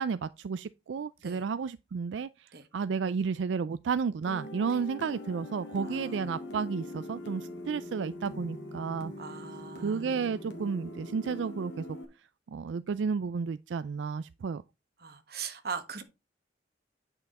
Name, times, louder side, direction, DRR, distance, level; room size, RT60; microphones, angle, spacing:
voice 1, 0.0-9.1 9.8-12.0 12.5-14.6, right 5 dB, 85° right, 0.4 m, -32 dB
sound 1, 4.3-12.1, left 1 dB, 75° left, 2.1 m, -42 dB
voice 2, 5.8-6.2 9.2-10.1 15.0-16.0, right 6 dB, 55° right, 1.3 m, -40 dB
9.0 x 5.8 x 4.1 m
head